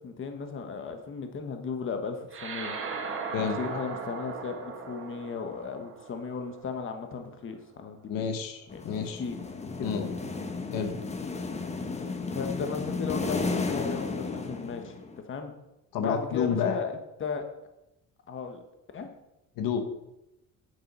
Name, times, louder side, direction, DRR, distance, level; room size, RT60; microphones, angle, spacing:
voice 1, 0.0-2.7 3.4-8.3 8.7-10.2 12.3-14.9 15.3-15.5 16.0-16.9 17.2-17.5 18.3-18.6 18.9-19.1, left 5 dB, 35° left, 6 dB, 1.3 m, -35 dB
sound 1, 2.3-7.1, right 5 dB, 40° right, 1.7 m, -38 dB
voice 2, 8.1-9.2 9.8-10.0 10.7-10.9 15.9-16.8 19.6-19.8, left 7 dB, 90° left, 7 dB, 1.4 m, -29 dB
sound 2, 8.7-15.2, left 4 dB, 20° left, 1.1 m, -33 dB
8.6 x 7.5 x 5.5 m, 0.92 s
cardioid pair, 125°, 33 cm